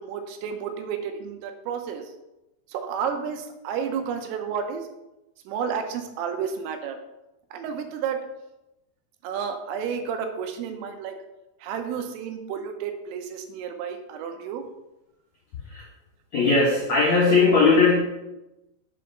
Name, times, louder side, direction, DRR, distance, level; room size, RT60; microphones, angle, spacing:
voice 1, 0.0-2.1 2.7-4.9 5.5-7.0 7.5-8.3 9.2-11.2 11.6-14.6, right 7 dB, 90° right, 6 dB, 3.6 m, -31 dB
voice 2, 16.3-18.0, left 4 dB, 85° left, -5 dB, 1.5 m, -18 dB
7.6 x 5.3 x 5.8 m, 0.95 s
omnidirectional pair, 5.7 m